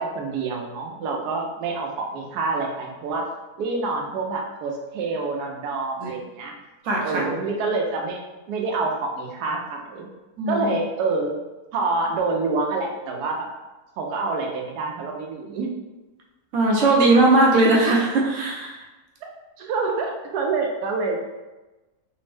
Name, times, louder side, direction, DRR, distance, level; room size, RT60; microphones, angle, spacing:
voice 1, 0.0-3.3 3.6-6.6 7.0-8.2 8.5-10.1 10.5-11.4 11.7-13.5 14.0-15.7 19.2-19.3 19.6-21.2, right 3 dB, 80° right, 1 dB, 1.1 m, -27 dB
voice 2, 6.8-7.2 10.4-10.7 16.5-18.8, right 2 dB, 65° right, -2 dB, 0.9 m, -19 dB
3.4 x 2.0 x 3.2 m, 1.1 s
omnidirectional pair, 1.6 m